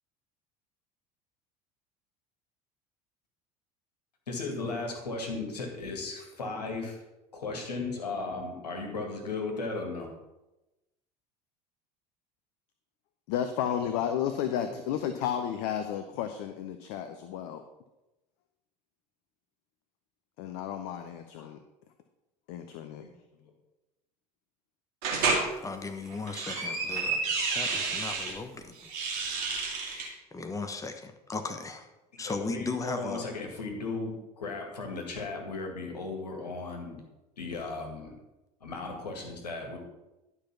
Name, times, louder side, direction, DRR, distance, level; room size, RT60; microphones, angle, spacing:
voice 1, 4.3-7.0 7.3-10.1 13.7-14.2 14.7-15.2 21.4-21.5 23.4-23.5 26.3-27.3 32.1-37.0 37.4-38.2 38.6-39.8, left 3 dB, 80° left, 2 dB, 2.0 m, -36 dB
voice 2, 13.3-17.6 20.4-21.6 22.5-23.0, left 9 dB, 55° left, 8 dB, 0.8 m, -32 dB
sound 1, 25.0-25.5 26.1-28.3 28.8-30.1, right 4 dB, 60° right, 2.3 m, -30 dB
voice 3, 25.6-28.7 29.5-29.9 30.3-31.9 32.2-33.2, left 3 dB, 15° left, 6 dB, 1.2 m, -37 dB
11.5 x 5.5 x 5.8 m, 0.99 s
figure-of-eight pair, 65°, 21 cm